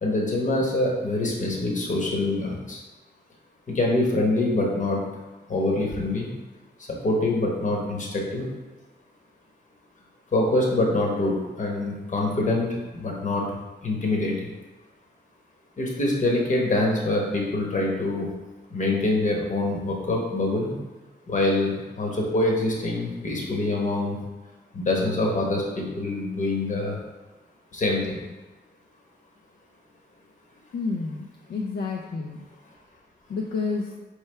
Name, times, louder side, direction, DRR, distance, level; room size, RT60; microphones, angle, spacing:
voice 1, 0.0-2.8 3.7-5.0 5.5-6.3 7.0-8.5 10.3-13.5 13.8-14.5 15.8-18.3 18.7-20.7 21.3-24.2 24.7-27.0 27.7-28.2, left 2 dB, 45° left, -1 dB, 1.0 m, -25 dB
voice 2, 30.7-32.4 33.3-33.8, left 4 dB, 65° left, 0 dB, 0.4 m, -29 dB
4.6 x 3.2 x 3.3 m, 1.2 s
wide cardioid pair, 115°, 18 cm